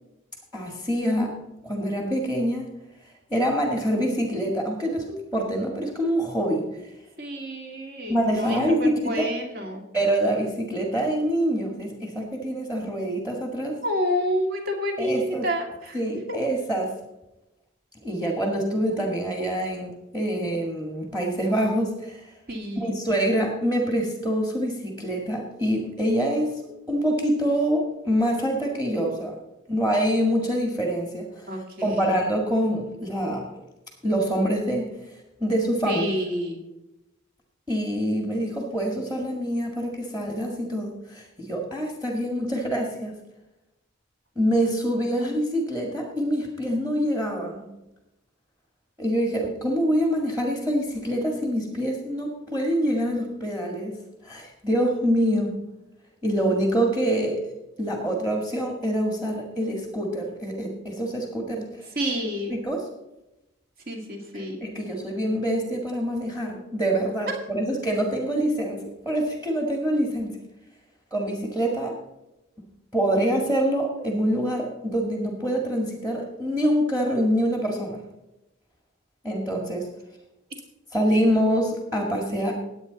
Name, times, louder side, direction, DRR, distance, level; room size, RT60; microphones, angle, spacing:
voice 1, 0.5-1.4 1.6-2.7 3.3-6.7 8.1-9.3 9.9-13.8 15.0-15.5 15.9-16.9 18.0-22.3 22.8-26.5 26.9-29.3 29.7-31.5 31.8-33.5 34.0-34.9 35.4-36.0 37.7-43.1 44.4-47.7 49.0-53.9 54.2-55.6 56.2-57.4 57.8-61.9 62.5-62.9 64.3-70.4 71.1-72.0 72.9-78.0 79.2-79.9 80.9-82.5, equal, 10° right, 1 dB, 1.8 m, -25 dB
voice 2, 7.2-9.8 13.8-16.0 16.3-16.4 22.5-23.0 31.5-32.2 35.8-36.6 62.0-62.6 63.9-64.6, equal, 50° right, 2 dB, 2.2 m, -29 dB
19.5 x 8.4 x 4.1 m, 0.95 s
head